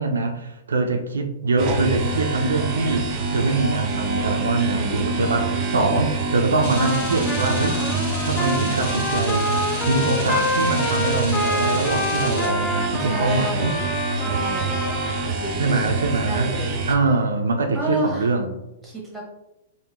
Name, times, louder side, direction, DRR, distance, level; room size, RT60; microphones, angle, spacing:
voice 1, 0.0-7.8 8.2-9.5 9.8-13.8 15.6-16.5 16.9-18.5, right 3 dB, 90° right, 4 dB, 0.3 m, -23 dB
sound 1, 1.6-16.9, right 3 dB, 35° right, 0.5 m, -26 dB
voice 2, 4.7-5.2 5.7-6.1 13.1-13.9 14.2-14.8 15.4-15.9 16.2-16.8 17.7-18.3 18.8-19.3, equal, 5° right, -3 dB, 0.9 m, -30 dB
sound 2, 6.6-12.5, left 1 dB, 45° left, 1.1 m, -34 dB
Trumpet, 6.8-15.3, left 1 dB, 20° left, 0.5 m, -27 dB
2.9 x 2.1 x 2.2 m, 0.91 s
hypercardioid pair, 130°, 0 cm